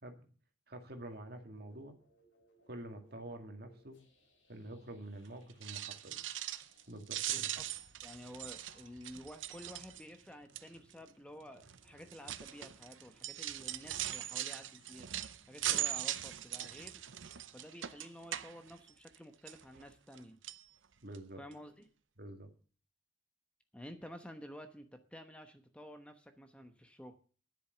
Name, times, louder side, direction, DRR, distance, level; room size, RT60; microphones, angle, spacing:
voice 1, 0.7-2.0 2.7-4.0 4.5-6.2 6.9-7.5 21.0-21.4 22.2-22.5, right 1 dB, 55° right, 5 dB, 2.0 m, -47 dB
sound 1, 1.1-18.6, equal, 85° left, 6.0 m, -68 dB
sound 2, 5.5-6.8 7.1-10.2 10.5-10.9 11.6-19.2 19.5-20.2 20.4-20.6 21.1-21.2 21.5-21.6, right 12 dB, 90° right, 0.7 m, -40 dB
voice 2, 7.3-7.7 8.0-15.1 15.5-17.0 17.5-20.4 21.4-21.9 23.7-27.2, equal, 5° left, 7 dB, 1.0 m, -51 dB
10.5 x 8.4 x 6.7 m, 0.40 s
head